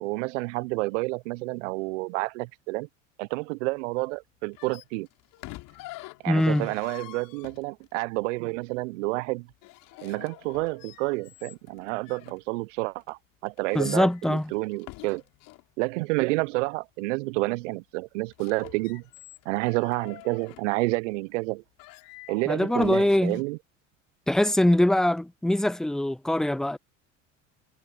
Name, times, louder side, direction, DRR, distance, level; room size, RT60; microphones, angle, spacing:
voice 1, 0.0-2.9 3.2-5.1 6.2-9.5 10.0-15.2 15.8-19.0 19.4-21.6 22.3-23.6, right 24 dB, 70° right, 0.9 m, -29 dB
sound 1, 4.5-8.0 9.5-12.4 13.0-13.1 13.5-15.7 18.2-20.7 21.4-21.5 21.8-23.4, left 20 dB, 60° left, 3.7 m, -47 dB
voice 2, 6.3-6.7 13.7-14.5 22.5-23.4 24.3-26.8, left 1 dB, ahead, 0.3 m, -23 dB
hypercardioid pair, 70°, 39 cm